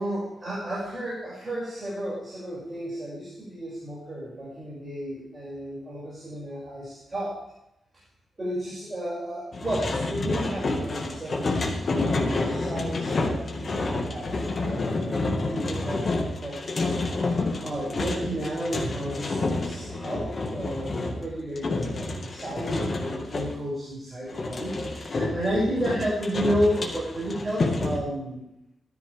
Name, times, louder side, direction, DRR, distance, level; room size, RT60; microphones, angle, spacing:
voice 1, 0.0-7.4 8.4-11.5 11.9-28.4, equal, 20° right, -8 dB, 7.3 m, -32 dB
sound 1, 9.5-23.6 24.3-28.0, left 2 dB, 40° left, 2.1 m, -29 dB
19.5 x 13.5 x 3.7 m, 0.85 s
wide cardioid pair, 140°, 0 cm